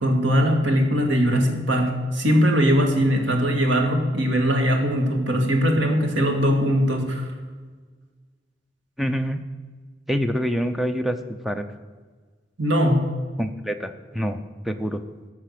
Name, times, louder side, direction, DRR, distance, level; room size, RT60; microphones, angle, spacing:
voice 1, 0.0-7.3 12.6-13.0, equal, 85° right, 2 dB, 1.9 m, -20 dB
voice 2, 9.0-9.4 10.1-11.2 11.4-11.6 13.4-14.4 14.6-15.0, equal, ahead, 7 dB, 0.6 m, -25 dB
13.5 x 6.0 x 6.6 m, 1.4 s
head